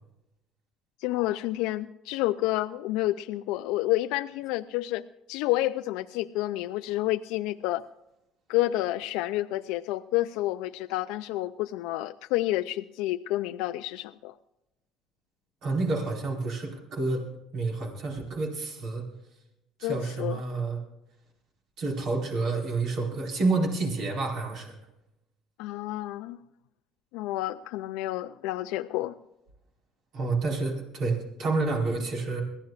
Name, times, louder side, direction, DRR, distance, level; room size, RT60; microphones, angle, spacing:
voice 1, 1.0-7.8 8.5-14.3 19.8-20.4 25.6-26.4 27.1-29.2, left 16 dB, 80° left, 8 dB, 0.4 m, -29 dB
voice 2, 15.6-19.0 19.8-20.8 21.8-24.7 30.1-32.4, right 3 dB, 60° right, 1 dB, 4.6 m, -29 dB
22.5 x 15.5 x 2.5 m, 0.88 s
supercardioid pair, 95°, 0 cm